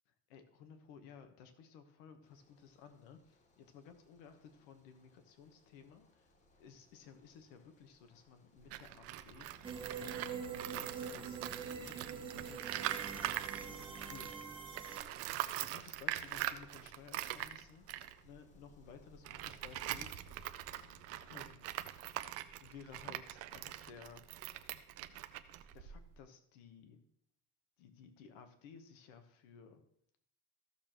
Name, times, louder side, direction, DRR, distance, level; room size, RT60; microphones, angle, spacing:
voice 1, 0.3-6.3 6.6-12.9 13.6-14.4 15.6-17.9 18.2-20.1 21.3-21.6 22.0-22.3 22.6-24.2 25.7-27.0 27.8-29.8, left 6 dB, 75° left, 8 dB, 1.3 m, -57 dB
sound 1, 2.2-21.4, left 2 dB, 20° left, 0.7 m, -65 dB
Tools, 8.6-14.4 14.7-26.2, right 13 dB, 40° right, 0.4 m, -43 dB
sound 2, 9.6-15.0, right 6 dB, 10° right, 0.8 m, -44 dB
14.5 x 6.6 x 3.0 m, 0.70 s
cardioid pair, 170°, 41 cm